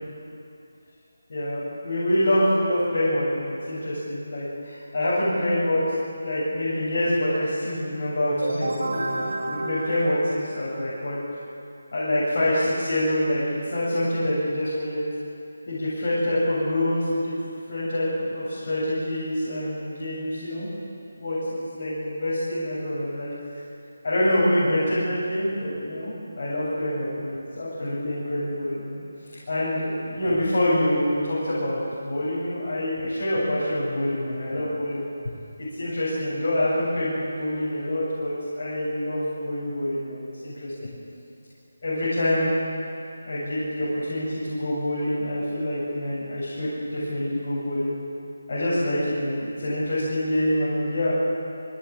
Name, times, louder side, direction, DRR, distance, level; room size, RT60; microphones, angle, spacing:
voice 1, 1.3-5.8 6.2-11.2 11.9-15.0 15.7-17.3 17.7-20.7 21.2-23.3 24.0-29.0 29.5-35.1 35.6-41.0 41.8-42.5 43.2-47.9 48.5-51.1, left 1 dB, 45° left, -9 dB, 7.8 m, -26 dB
sound 1, 8.4-11.1, right 2 dB, 55° right, 5.6 m, -31 dB
23.0 x 19.5 x 9.0 m, 2.6 s
figure-of-eight pair, 175°, 0 cm